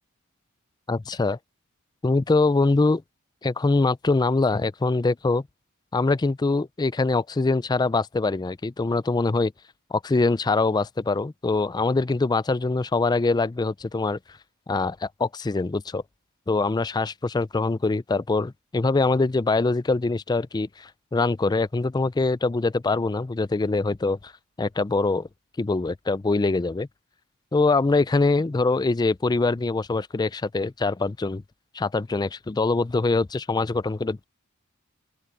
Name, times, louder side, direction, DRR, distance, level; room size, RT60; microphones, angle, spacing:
voice 1, 0.9-1.4 2.0-3.0 3.4-5.4 5.9-9.5 9.9-14.2 14.7-16.0 16.5-24.3 24.6-25.3 25.6-26.9 27.5-31.4 31.7-34.2, left 3 dB, 20° left, 0.4 m, -23 dB
open air
head